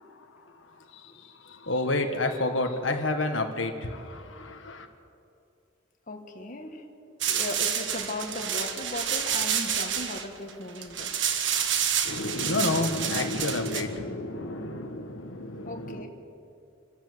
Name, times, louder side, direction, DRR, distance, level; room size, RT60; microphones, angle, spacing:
voice 1, 0.1-4.9 12.0-16.1, left 2 dB, 90° left, 5 dB, 1.7 m, -30 dB
voice 2, 6.1-6.8 7.3-11.2 15.7-16.1, left 2 dB, 45° left, 3 dB, 1.8 m, -37 dB
sound 1, 7.2-13.8, right 8 dB, 70° right, 1.5 m, -29 dB
27.0 x 12.5 x 8.1 m, 2.6 s
head